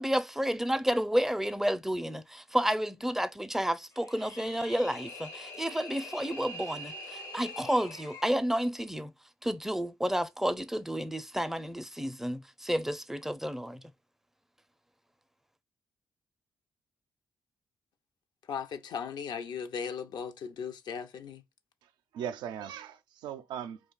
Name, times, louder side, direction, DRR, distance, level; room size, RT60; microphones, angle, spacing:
voice 1, 0.0-9.1 9.4-13.8, equal, 5° right, 0.4 m, -31 dB
sound 1, 3.9-8.4, left 1 dB, 85° left, 1.1 m, -44 dB
voice 2, 18.5-21.4, left 6 dB, 70° left, 0.5 m, -37 dB
voice 3, 21.8-23.8, right 9 dB, 80° right, 0.4 m, -39 dB
2.4 x 2.2 x 3.7 m
supercardioid pair, 50°, 8 cm